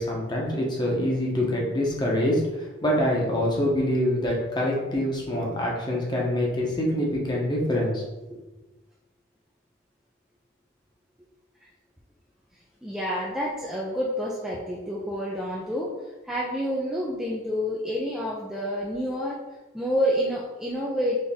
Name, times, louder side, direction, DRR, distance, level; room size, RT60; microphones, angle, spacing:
voice 1, 0.0-8.0 8.3-8.4, left 1 dB, 20° left, -2 dB, 0.9 m, -25 dB
voice 2, 12.8-15.9 16.2-19.4 19.7-21.2, equal, 5° right, -5 dB, 0.4 m, -28 dB
4.2 x 3.4 x 3.5 m, 1.1 s
head